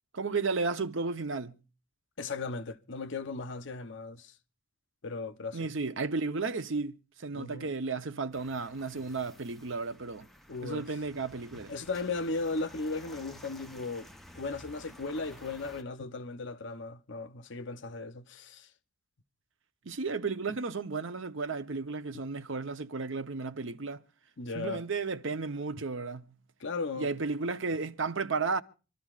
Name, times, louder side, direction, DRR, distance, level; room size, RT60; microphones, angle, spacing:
voice 1, 0.1-1.6 5.5-10.3 10.6-11.7 19.8-24.0 24.5-26.3 27.0-28.6, right 4 dB, 65° right, 0.8 m, -33 dB
voice 2, 2.2-4.3 5.0-5.7 7.3-7.7 10.5-10.8 11.7-14.1 14.3-18.7 24.4-24.8 26.6-27.1, left 3 dB, 60° left, 0.8 m, -36 dB
sound 1, 8.3-15.8, left 1 dB, ahead, 0.8 m, -53 dB
26.0 x 13.0 x 2.4 m
head